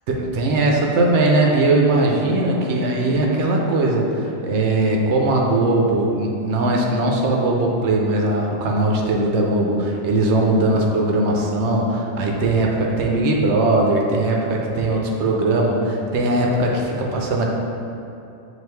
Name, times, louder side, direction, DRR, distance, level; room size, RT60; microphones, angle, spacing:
voice 1, 0.1-17.5, right 2 dB, 75° right, -1 dB, 0.9 m, -19 dB
5.9 x 2.4 x 3.3 m, 2.7 s
omnidirectional pair, 1.2 m